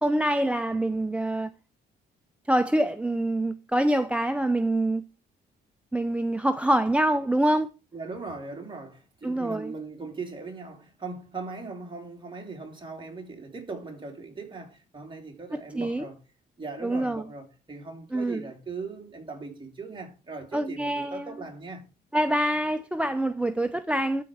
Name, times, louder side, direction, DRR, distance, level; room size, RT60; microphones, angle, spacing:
voice 1, 0.0-1.5 2.5-5.0 5.9-7.7 9.2-9.7 15.5-16.1 16.8-17.3 18.1-18.4 20.5-21.3 22.1-24.2, right 1 dB, 5° right, 0.6 m, -25 dB
voice 2, 7.9-16.2 16.6-21.9, right 3 dB, 25° right, 2.9 m, -39 dB
12.5 x 4.4 x 4.9 m
cardioid pair, 90°, 20 cm